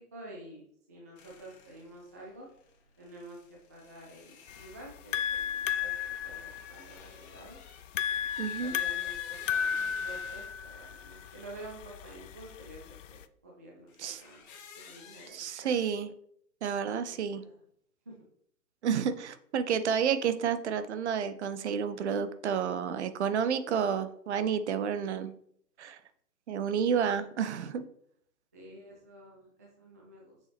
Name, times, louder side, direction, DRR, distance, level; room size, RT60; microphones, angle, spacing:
voice 1, 0.0-2.5 3.0-7.6 8.4-15.8 16.9-17.6 18.1-18.2 28.5-30.4, right 1 dB, 10° right, -2 dB, 0.4 m, -50 dB
sound 1, 1.2-10.5 13.9-15.3, left 6 dB, 35° left, 1.7 m, -54 dB
sound 2, 4.5-13.2, left 8 dB, 55° left, 0.5 m, -34 dB
voice 2, 8.4-8.7 14.0-14.2 15.3-16.1 16.6-17.4 18.8-25.3 25.8-26.0 26.5-27.8, right 7 dB, 45° right, 11 dB, 0.7 m, -30 dB
7.0 x 6.4 x 3.5 m, 0.67 s
hypercardioid pair, 140°, 47 cm